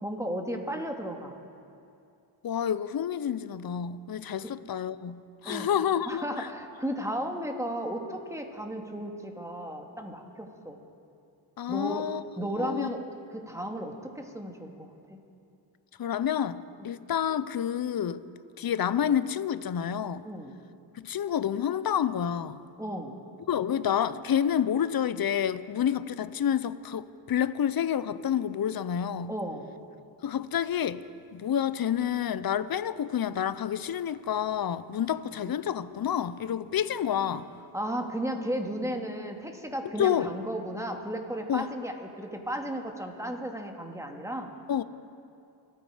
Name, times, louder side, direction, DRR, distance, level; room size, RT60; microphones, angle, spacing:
voice 1, 0.0-1.3 4.4-4.5 5.4-5.7 6.1-10.8 11.7-12.0 12.4-13.0 13.3-15.2 20.2-20.6 22.8-23.2 29.3-29.7 37.3-37.4 37.7-44.5, equal, 5° right, 3 dB, 2.1 m, -34 dB
voice 2, 2.4-6.5 11.6-12.9 16.0-18.2 18.6-20.2 20.9-22.6 23.5-29.3 30.2-31.0 31.3-37.5 40.0-40.3 41.5-41.7 44.7-44.8, left 9 dB, 50° left, 15 dB, 0.7 m, -29 dB
28.0 x 9.4 x 5.0 m, 2.6 s
cardioid pair, 60°, 47 cm